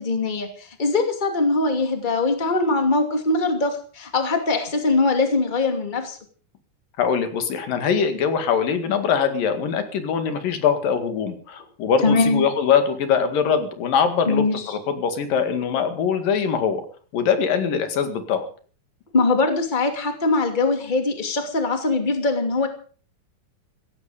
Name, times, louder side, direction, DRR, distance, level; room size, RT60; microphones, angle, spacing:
voice 1, 0.0-6.2 12.0-12.4 14.3-14.8 19.1-22.7, left 3 dB, 15° left, 5 dB, 2.3 m, -22 dB
voice 2, 7.0-16.8 17.1-18.4, left 7 dB, 85° left, 8 dB, 3.7 m, -22 dB
16.0 x 16.0 x 5.1 m, 0.42 s
omnidirectional pair, 3.8 m